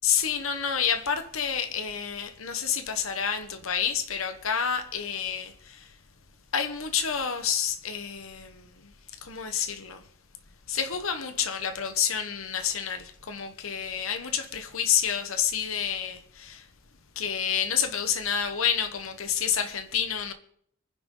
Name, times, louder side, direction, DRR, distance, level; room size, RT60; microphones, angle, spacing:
voice 1, 0.0-5.9 6.5-10.0 10.7-16.7 17.1-20.3, left 8 dB, 80° left, 1.1 m, -29 dB
24.5 x 10.5 x 3.8 m
head